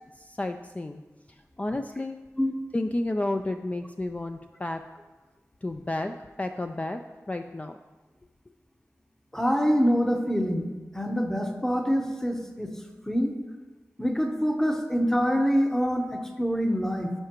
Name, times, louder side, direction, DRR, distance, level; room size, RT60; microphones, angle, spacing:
voice 1, 0.2-1.0 1.3-2.2 2.7-4.8 5.6-7.0 7.3-7.8, left 2 dB, 25° left, 5 dB, 0.3 m, -31 dB
voice 2, 9.3-12.7 13.1-13.3 14.0-17.1, equal, 10° left, 3 dB, 0.8 m, -25 dB
9.7 x 5.7 x 3.0 m, 1.2 s
wide cardioid pair, 65°, 6 cm